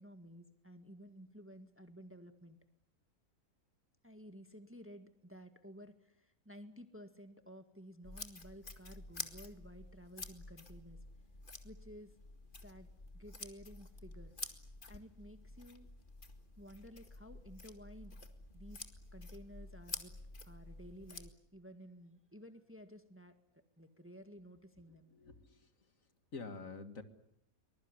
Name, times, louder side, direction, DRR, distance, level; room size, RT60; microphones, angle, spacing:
voice 1, 0.0-2.6 4.0-11.0 11.6-12.2 12.6-12.9 13.1-14.3 14.9-15.9 16.6-18.2 18.5-18.8 19.1-20.1 20.4-25.1, equal, 10° right, 8 dB, 1.8 m, -54 dB
sound 1, 8.0-21.3, left 2 dB, 35° left, 2.2 m, -50 dB
voice 2, 24.9-25.9 26.3-27.0, left 4 dB, 60° left, 9 dB, 2.3 m, -48 dB
23.5 x 21.5 x 9.8 m, 0.78 s
omnidirectional pair, 1.6 m